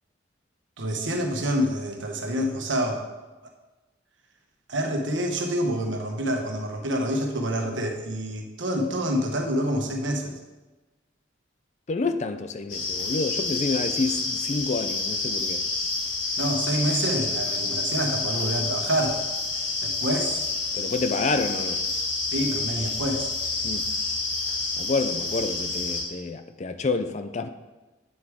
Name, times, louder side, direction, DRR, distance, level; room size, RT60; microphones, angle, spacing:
voice 1, 0.8-3.0 4.7-10.3 16.4-19.2 19.8-20.4 22.3-23.3, equal, 80° right, 2 dB, 1.3 m, -27 dB
voice 2, 11.9-15.6 20.7-21.8 23.6-23.9 24.8-27.5, left 3 dB, 35° left, 9 dB, 0.4 m, -28 dB
sound 1, 12.7-26.0, left 3 dB, 85° left, 2.0 m, -28 dB
8.7 x 7.9 x 3.6 m, 1.2 s
head